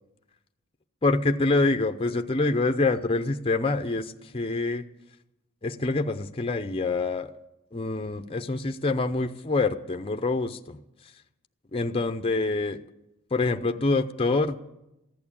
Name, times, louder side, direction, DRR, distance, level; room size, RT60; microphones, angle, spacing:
voice 1, 1.0-4.8 5.6-7.3 7.7-10.8 11.7-12.8 13.3-14.6, left 3 dB, 25° left, 8 dB, 0.6 m, -26 dB
15.0 x 11.0 x 8.6 m, 0.91 s
head